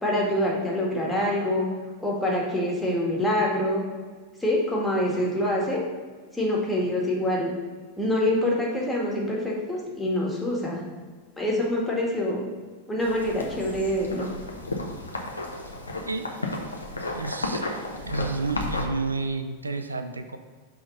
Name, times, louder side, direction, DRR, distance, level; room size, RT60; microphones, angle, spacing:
voice 1, 0.0-1.7 2.0-3.8 4.4-5.8 6.3-7.5 8.0-10.8 11.4-12.4 12.9-14.3, left 1 dB, 5° left, -3 dB, 1.7 m, -25 dB
sound 1, 13.0-18.8, left 2 dB, 80° left, 0.9 m, -33 dB
voice 2, 17.1-17.6 18.1-20.4, right 3 dB, 80° right, 8 dB, 0.4 m, -30 dB
5.9 x 3.6 x 5.5 m, 1.5 s
figure-of-eight pair, 90°, 0 cm